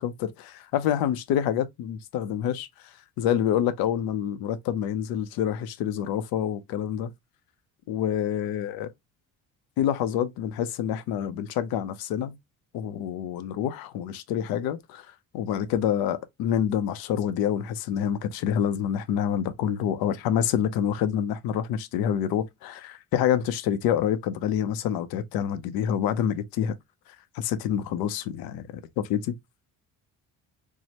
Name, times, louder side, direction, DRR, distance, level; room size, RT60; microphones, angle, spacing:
voice 1, 0.0-2.7 3.2-7.1 7.9-8.9 9.8-12.4 12.7-15.1 15.3-26.7 27.3-28.7 29.0-29.3, left 9 dB, 85° left, 0.6 m, -27 dB
4.6 x 2.1 x 2.8 m
cardioid pair, 140°, 35 cm